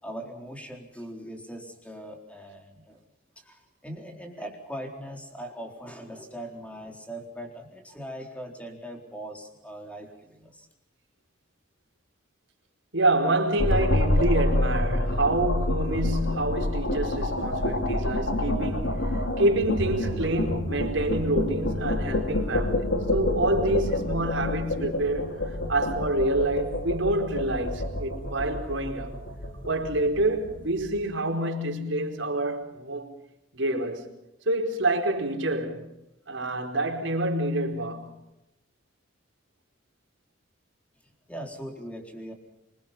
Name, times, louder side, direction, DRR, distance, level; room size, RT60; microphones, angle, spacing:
voice 1, 0.0-3.0 3.4-10.7 41.3-42.3, right 1 dB, 5° left, 4.0 m, -40 dB
voice 2, 12.9-29.2 29.7-33.1 33.5-34.1 34.5-35.9 36.3-38.2, right 1 dB, 85° right, 4.6 m, -27 dB
sound 1, 13.6-30.8, left 1 dB, 80° left, 2.9 m, -28 dB
26.0 x 24.0 x 5.8 m
head